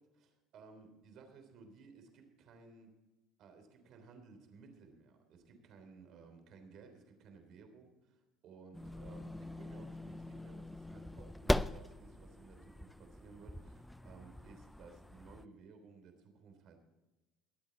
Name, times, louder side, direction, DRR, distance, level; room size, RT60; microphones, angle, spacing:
voice 1, 0.0-3.0 3.4-16.8, right 4 dB, 55° right, 6 dB, 3.4 m, -57 dB
sound 1, 8.7-15.5, left 1 dB, 5° left, 0.4 m, -40 dB
22.0 x 8.8 x 4.1 m, 1.1 s
cardioid pair, 120°, 0 cm